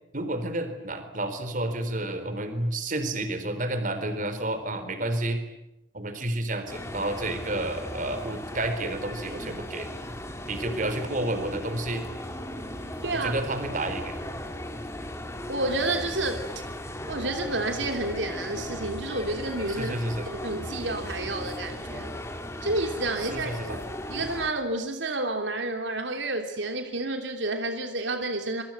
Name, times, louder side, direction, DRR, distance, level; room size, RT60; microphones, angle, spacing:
voice 1, 0.1-5.4 5.9-9.9 10.5-12.0 13.1-14.1 19.7-20.3 23.2-23.8, right 1 dB, 45° right, 9 dB, 4.2 m, -30 dB
sound 1, 6.7-24.5, left 1 dB, 15° left, 3.2 m, -37 dB
voice 2, 13.0-13.3 15.5-16.4 17.1-20.0 20.3-22.1 22.6-23.8 24.1-28.6, right 2 dB, 80° right, 5 dB, 3.1 m, -30 dB
26.5 x 24.0 x 9.1 m, 0.87 s
head